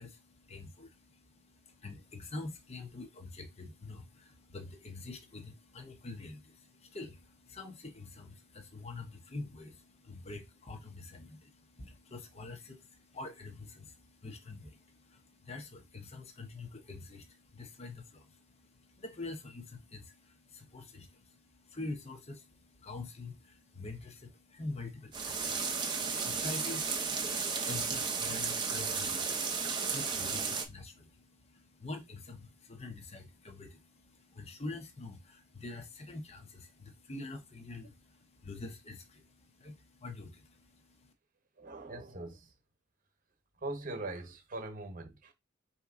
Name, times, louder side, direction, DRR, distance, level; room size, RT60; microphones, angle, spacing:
voice 1, 0.0-41.1, left 2 dB, 30° left, 0.9 m, -46 dB
sound 1, 25.1-30.6, right 5 dB, 20° right, 0.7 m, -33 dB
voice 2, 41.6-42.5 43.6-45.3, right 2 dB, 45° right, 0.9 m, -41 dB
4.5 x 2.8 x 3.6 m
head